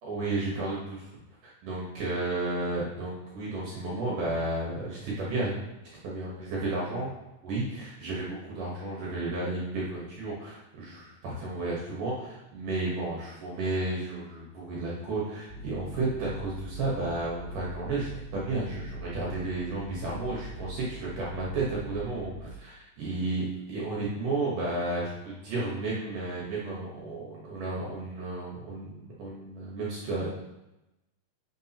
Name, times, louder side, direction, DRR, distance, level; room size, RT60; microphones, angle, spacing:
voice 1, 0.0-1.0 1.4-5.5 6.0-7.1 7.4-30.3, right 2 dB, 65° right, -5 dB, 2.3 m, -32 dB
sound 1, 15.5-22.6, right 1 dB, 65° left, 2.9 m, -42 dB
10.0 x 5.8 x 2.9 m, 0.97 s
omnidirectional pair, 5.0 m